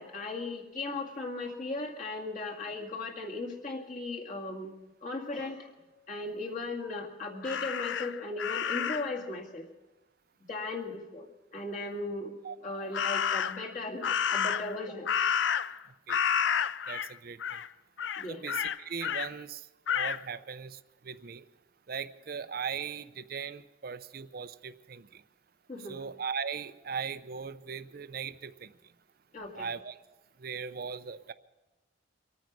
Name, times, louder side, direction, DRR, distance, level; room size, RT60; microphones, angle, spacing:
voice 1, 0.0-4.7 5.0-5.7 6.1-9.7 10.5-11.3 11.5-12.3 12.6-15.1 18.2-18.4 25.7-26.0 29.3-29.7, left 2 dB, 40° left, -1 dB, 2.2 m, -37 dB
Crow, 7.4-9.2 12.9-13.7 14.0-15.8 16.1-17.1 17.4-17.7 18.0-19.3 19.9-20.2, left 8 dB, 70° left, 0.4 m, -30 dB
voice 2, 16.9-17.4 18.3-19.7 19.9-21.5 21.9-25.2 25.9-28.7 29.5-30.0 30.4-31.3, right 6 dB, 50° right, 13 dB, 0.5 m, -39 dB
24.5 x 9.3 x 6.1 m, 1.1 s
head